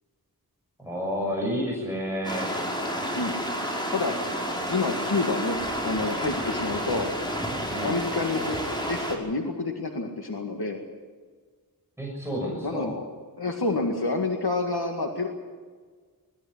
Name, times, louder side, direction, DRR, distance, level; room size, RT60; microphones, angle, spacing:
voice 1, 0.8-2.6 7.7-7.9 12.0-12.9, equal, 5° right, -3 dB, 6.7 m, -30 dB
sound 1, 2.2-9.2, equal, 10° left, 5.2 m, -30 dB
voice 2, 4.7-5.6 5.8-7.1 7.8-8.6 8.9-10.8 12.6-12.9 13.4-15.3, left 3 dB, 75° left, 2 dB, 2.0 m, -28 dB
22.0 x 14.5 x 10.0 m, 1.5 s
wide cardioid pair, 50°, 39 cm